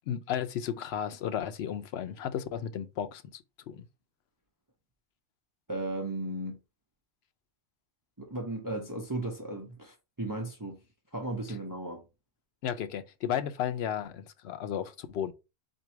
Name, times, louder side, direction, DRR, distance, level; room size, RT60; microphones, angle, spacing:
voice 1, 0.1-3.9 12.6-15.3, left 9 dB, 70° left, 0.8 m, -34 dB
voice 2, 5.7-6.6 8.2-10.8 11.1-12.0, right 2 dB, 20° right, 0.6 m, -35 dB
4.0 x 2.7 x 4.4 m
omnidirectional pair, 1.2 m